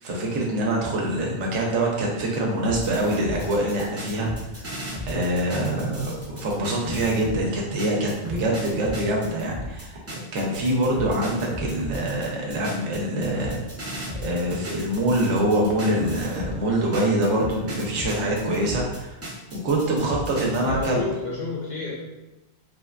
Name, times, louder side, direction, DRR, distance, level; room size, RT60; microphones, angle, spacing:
voice 1, 0.0-4.3 5.1-10.0 10.3-13.6 14.2-19.1 19.5-21.0, right 1 dB, 90° right, -2 dB, 1.0 m, -24 dB
sound 1, 2.6-7.4 7.8-16.6 16.9-20.9, left 1 dB, 20° right, 0.4 m, -35 dB
voice 2, 20.7-21.9, left 3 dB, 55° left, -5 dB, 0.5 m, -30 dB
3.1 x 2.2 x 2.3 m, 1.0 s
omnidirectional pair, 1.2 m